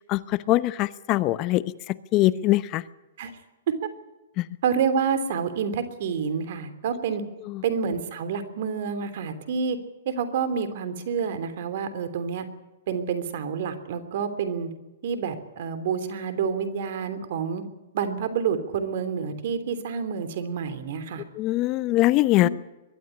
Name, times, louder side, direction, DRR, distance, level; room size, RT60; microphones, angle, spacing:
voice 1, 0.0-2.8 4.4-4.5 7.5-7.6 21.3-22.5, left 17 dB, 35° left, 17 dB, 0.8 m, -23 dB
voice 2, 4.6-7.2 7.6-9.8 10.0-12.4 12.9-14.7 15.0-17.6 17.9-21.2 22.4-22.5, right 6 dB, 60° right, 11 dB, 3.2 m, -28 dB
22.5 x 12.5 x 9.9 m, 1.1 s
hypercardioid pair, 130°, 0 cm